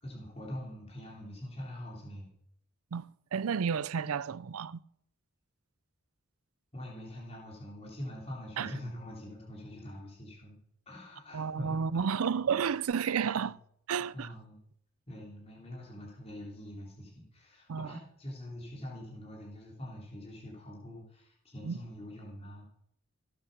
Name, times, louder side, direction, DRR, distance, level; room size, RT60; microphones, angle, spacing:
voice 1, 0.0-2.3 6.7-10.6 10.9-12.1 12.5-12.6 13.3-13.5 14.1-14.6 15.1-22.7, left 1 dB, 30° left, 3.5 m, -44 dB
voice 2, 3.3-4.8 8.6-8.7 11.3-13.6 13.9-14.3 17.7-18.0 21.7-21.8, right 6 dB, 80° right, 0.5 m, -31 dB
16.5 x 8.4 x 6.6 m
head